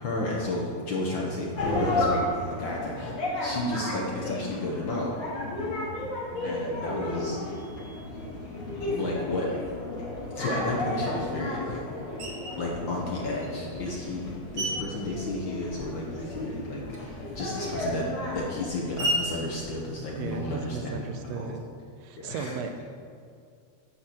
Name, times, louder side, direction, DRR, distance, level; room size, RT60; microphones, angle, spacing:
voice 1, 0.0-2.2 2.5-5.1 6.4-7.4 9.0-9.5 10.3-11.8 12.6-18.1 18.3-21.5 22.2-22.5, left 2 dB, 70° left, -2 dB, 1.2 m, -32 dB
sound 1, 1.6-18.7, left 1 dB, 50° left, 3.1 m, -33 dB
voice 2, 6.7-7.1 20.1-21.6 22.0-22.8, right 5 dB, 75° right, 6 dB, 1.7 m, -36 dB
Screech, 12.2-12.7 13.4-16.1 16.4-20.7, right 1 dB, 50° right, 1.7 m, -36 dB
9.9 x 4.2 x 7.5 m, 2.2 s
omnidirectional pair, 3.3 m